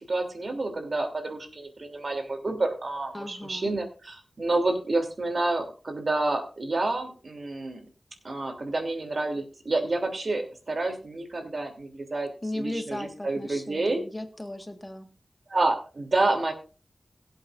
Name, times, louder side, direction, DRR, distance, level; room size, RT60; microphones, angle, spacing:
voice 1, 0.0-7.8 8.2-12.3 12.5-14.0 15.5-16.5, right 2 dB, 60° right, 4 dB, 3.0 m, -29 dB
voice 2, 3.1-3.7 12.4-15.1, left 1 dB, 20° left, 6 dB, 1.6 m, -36 dB
22.5 x 8.1 x 2.6 m, 0.36 s
wide cardioid pair, 70°, 0 cm